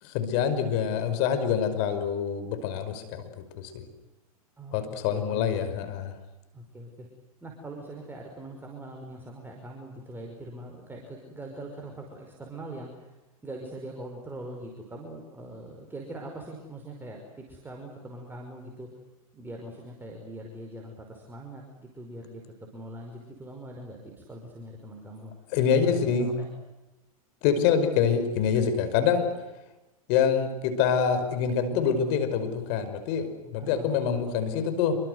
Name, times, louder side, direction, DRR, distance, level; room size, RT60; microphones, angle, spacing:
voice 1, 0.0-3.8 4.7-6.1 25.5-26.4 27.4-29.3 30.1-35.0, left 7 dB, 50° left, 9 dB, 5.4 m, -26 dB
voice 2, 4.6-5.7 6.5-7.1 7.4-13.1 13.4-18.9 19.3-22.4 22.7-25.3 25.7-26.5 33.6-34.4, right 1 dB, 10° right, 1 dB, 5.4 m, -42 dB
27.5 x 24.5 x 8.1 m, 1.0 s
hypercardioid pair, 115°, 19 cm